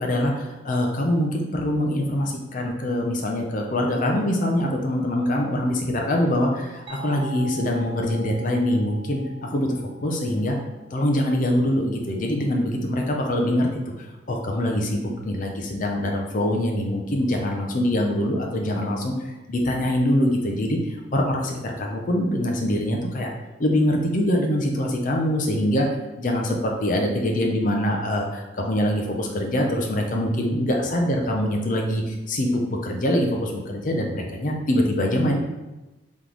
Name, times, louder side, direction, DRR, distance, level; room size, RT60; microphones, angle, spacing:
voice 1, 0.0-10.6 10.9-13.7 14.3-23.3 23.6-25.9 26.2-35.4, left 1 dB, 45° left, 1 dB, 0.5 m, -24 dB
sound 1, 6.9-12.3, equal, 30° right, 0.4 m, -43 dB
3.6 x 3.0 x 3.7 m, 1.1 s
head